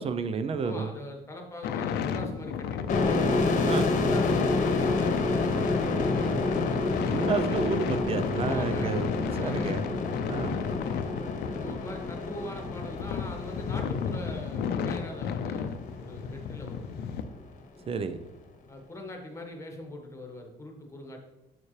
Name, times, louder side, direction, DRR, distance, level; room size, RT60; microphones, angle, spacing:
voice 1, 0.0-0.9 3.6-3.9 7.1-9.8 10.3-10.5 17.9-18.2, right 5 dB, 35° right, 11 dB, 0.6 m, -30 dB
voice 2, 0.6-3.2 3.8-5.2 5.9-6.2 8.4-9.8 11.5-16.8 18.7-21.2, left 1 dB, 15° left, 2 dB, 1.4 m, -42 dB
sound 1, 1.6-17.2, left 7 dB, 75° left, 0.6 m, -33 dB
sound 2, 2.9-16.3, left 3 dB, 45° left, 1.1 m, -29 dB
7.0 x 5.9 x 3.3 m, 0.98 s
cardioid pair, 110°, 17 cm